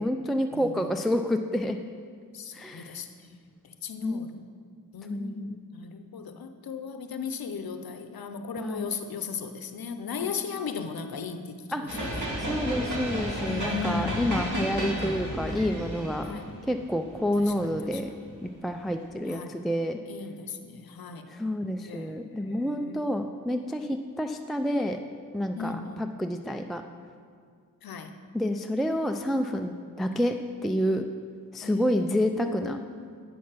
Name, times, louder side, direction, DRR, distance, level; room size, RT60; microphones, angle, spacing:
voice 1, 0.0-1.8 2.5-3.0 4.0-4.3 5.1-5.6 8.6-8.9 11.7-11.8 12.4-16.3 16.7-18.1 18.4-20.0 21.3-25.0 25.3-26.8 28.3-30.3 30.6-31.1 31.5-32.8, equal, ahead, 5 dB, 0.3 m, -29 dB
voice 2, 0.5-1.0 2.3-3.4 3.6-4.5 4.9-12.3 13.4-14.8 16.2-16.5 17.4-18.2 19.3-19.6 20.1-21.4 21.9-23.3 25.6-26.1 27.8-28.2 31.6-33.2, left 5 dB, 85° left, 8 dB, 0.7 m, -37 dB
sound 1, 11.9-18.2, equal, 55° right, 2.4 m, -32 dB
8.4 x 6.5 x 5.8 m, 2.1 s
wide cardioid pair, 95°, 35 cm